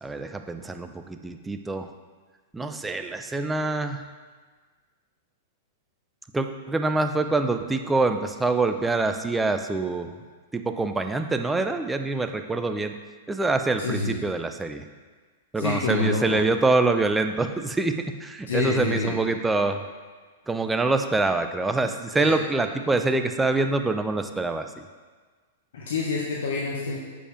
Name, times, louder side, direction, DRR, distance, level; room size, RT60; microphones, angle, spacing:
voice 1, 0.0-1.9 2.5-4.1 6.3-10.1 10.5-13.0 13.3-14.9 15.5-19.8 20.5-24.7, right 3 dB, 10° right, 7 dB, 0.5 m, -25 dB
voice 2, 13.8-14.2 15.6-16.4 18.5-19.2 22.2-22.3 25.7-27.0, left 3 dB, 70° left, -3 dB, 1.0 m, -27 dB
6.7 x 5.1 x 5.0 m, 1.5 s
hypercardioid pair, 110°, 0 cm